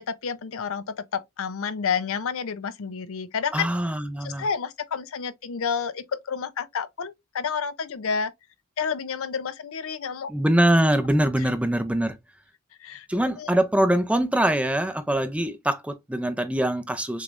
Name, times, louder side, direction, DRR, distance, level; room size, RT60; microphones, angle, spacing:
voice 1, 0.0-3.7 4.2-8.3 8.8-10.3 11.4-11.5 12.8-13.1 13.4-13.5, left 6 dB, 65° left, 0.5 m, -30 dB
voice 2, 3.5-4.5 10.3-12.2 13.1-17.2, right 1 dB, 5° right, 0.5 m, -23 dB
6.6 x 3.1 x 2.5 m
head